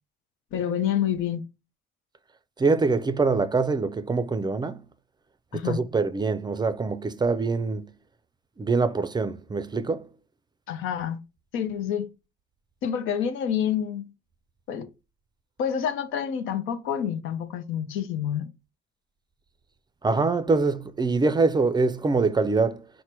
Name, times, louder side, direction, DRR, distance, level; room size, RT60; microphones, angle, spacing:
voice 1, 0.5-1.4 5.5-5.8 10.7-11.2 11.5-12.1 12.8-14.1 14.7-14.9 15.6-18.5, left 9 dB, 90° left, 0.6 m, -28 dB
voice 2, 2.6-4.8 5.5-7.9 8.6-10.1 20.0-22.9, right 4 dB, 20° right, 0.4 m, -24 dB
4.5 x 2.1 x 4.4 m
cardioid pair, 90°, 20 cm